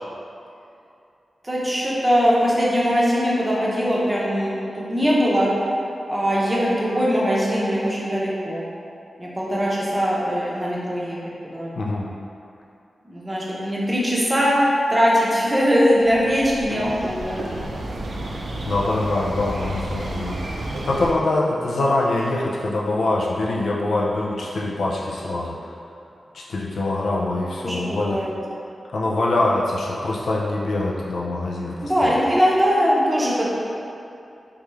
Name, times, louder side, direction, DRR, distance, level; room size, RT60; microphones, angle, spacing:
voice 1, 1.4-5.5 6.1-8.6 9.2-11.2 11.4-11.7 13.1-14.5 14.9-17.5 27.6-28.3 31.8-33.5, equal, 15° right, -6 dB, 0.6 m, -21 dB
voice 2, 11.8-12.1 18.7-20.4 20.8-25.7 26.3-28.2 28.9-32.2, left 2 dB, 85° left, -4 dB, 0.4 m, -24 dB
sound 1, 15.9-21.1, right 1 dB, 90° right, 0.4 m, -31 dB
3.4 x 3.4 x 3.1 m, 2.6 s
wide cardioid pair, 150°, 0 cm